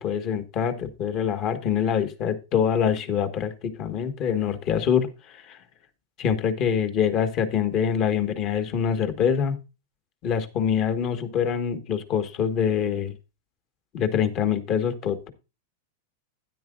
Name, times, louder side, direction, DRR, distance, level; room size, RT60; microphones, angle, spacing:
voice 1, 0.0-5.1 5.3-5.6 6.2-9.6 10.2-13.1 13.9-15.3, left 8 dB, 40° left, 9 dB, 1.4 m, -25 dB
12.5 x 10.0 x 2.5 m, 0.28 s
hypercardioid pair, 115°, 0 cm